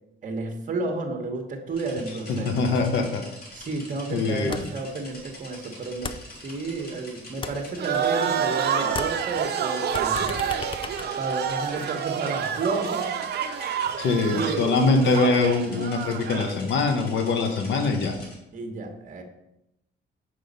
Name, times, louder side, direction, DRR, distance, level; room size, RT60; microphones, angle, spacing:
voice 1, 0.2-2.5 3.5-10.3 11.2-13.1 14.3-15.0 18.5-19.2, right 3 dB, 45° right, 3 dB, 1.1 m, -31 dB
sound 1, 1.7-18.3, left 1 dB, 50° left, 2.6 m, -45 dB
voice 2, 2.3-3.3 4.1-4.6 14.0-18.2, left 3 dB, 70° left, 5 dB, 1.2 m, -23 dB
sound 2, 4.5-4.9 5.2-7.0 7.2-8.6 8.8-11.9, left 5 dB, 25° left, 0.4 m, -38 dB
sound 3, 7.8-16.5, right 8 dB, 60° right, 0.6 m, -28 dB
6.1 x 5.0 x 5.3 m, 0.86 s
cardioid pair, 125°, 20 cm